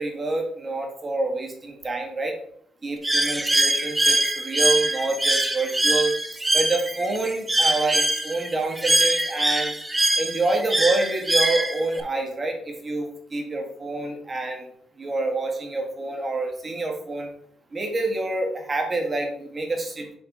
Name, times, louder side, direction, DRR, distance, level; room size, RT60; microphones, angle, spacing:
voice 1, 0.0-2.4 2.8-6.2 6.5-9.7 10.2-14.7 15.0-17.3 17.7-20.1, right 2 dB, 30° right, 1 dB, 1.8 m, -27 dB
Bird, 3.0-12.0, right 1 dB, 10° right, 0.9 m, -23 dB
7.2 x 4.6 x 3.7 m, 0.65 s
cardioid pair, 90°, 0 cm